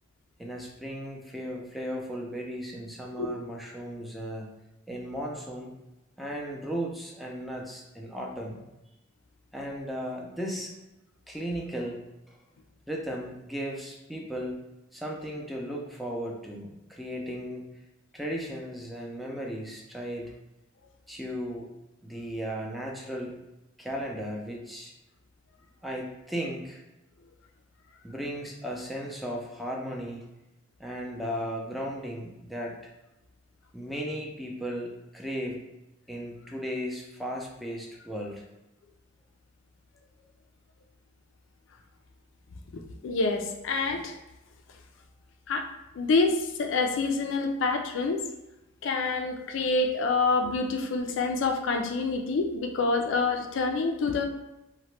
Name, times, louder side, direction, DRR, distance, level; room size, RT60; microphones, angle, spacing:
voice 1, 0.4-4.5 4.9-5.7 6.2-8.6 9.5-10.7 11.3-12.0 12.9-14.6 14.9-17.7 18.1-20.3 21.1-21.7 22.0-23.4 23.8-24.9 25.8-26.8 28.0-30.3 30.8-32.8 33.7-35.6 36.1-38.4, equal, ahead, -2 dB, 0.4 m, -36 dB
voice 2, 42.7-44.1 45.5-45.7 45.9-48.2 48.8-54.2, left 3 dB, 65° left, 5 dB, 0.4 m, -27 dB
2.9 x 2.1 x 3.1 m, 0.97 s
head